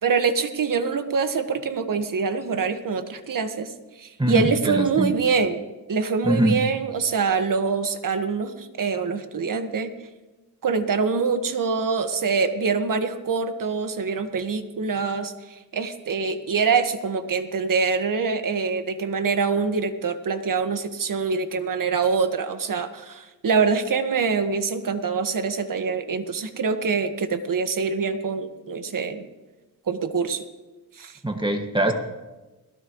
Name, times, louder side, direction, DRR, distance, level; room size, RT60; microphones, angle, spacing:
voice 1, 0.0-3.7 4.0-5.6 5.9-9.9 10.6-29.3 29.9-30.4 31.0-31.2, right 5 dB, 55° right, 8 dB, 1.7 m, -25 dB
voice 2, 4.2-5.1 6.2-6.6 31.2-31.9, right 1 dB, 10° right, 3 dB, 1.9 m, -22 dB
21.0 x 18.0 x 3.2 m, 1.1 s
cardioid pair, 70°, 40 cm